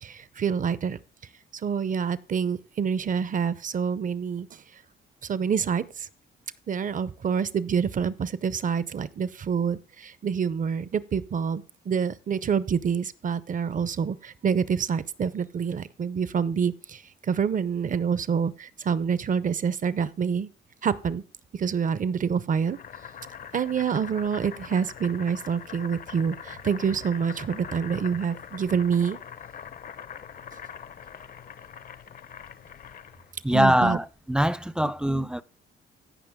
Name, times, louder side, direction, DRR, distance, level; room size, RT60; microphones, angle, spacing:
voice 1, 0.0-1.0 1.6-4.6 5.2-6.1 6.7-20.5 20.8-21.2 21.5-22.8 23.5-29.2 33.5-34.0 35.1-35.3, right 6 dB, 40° right, 0.7 m, -27 dB
Boiling, 22.7-33.3, left 7 dB, 50° left, 0.7 m, -43 dB
voice 2, 33.4-35.4, equal, 5° right, 0.4 m, -23 dB
16.0 x 5.6 x 3.6 m
cardioid pair, 90°, 20 cm